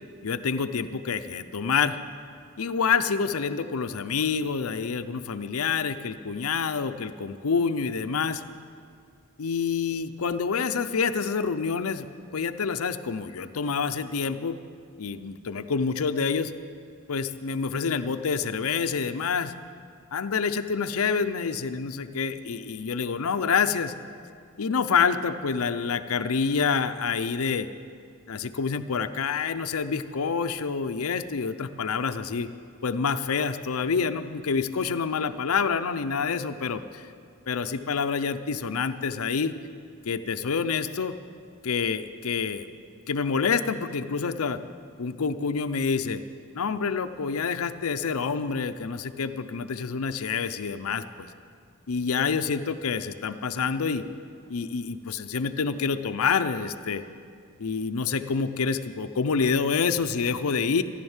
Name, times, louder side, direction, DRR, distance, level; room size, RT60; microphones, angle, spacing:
voice 1, 0.2-2.0 2.6-8.4 9.4-12.1 12.3-14.6 15.0-16.5 17.1-19.5 20.1-23.9 24.6-27.7 28.3-32.5 32.8-37.1 37.5-39.5 40.1-41.1 41.6-42.7 43.1-44.6 45.0-46.2 46.5-51.3 51.9-54.0 54.5-57.0 57.6-60.8, left 5 dB, 80° left, 10 dB, 0.6 m, -27 dB
14.5 x 11.0 x 7.2 m, 2.2 s
head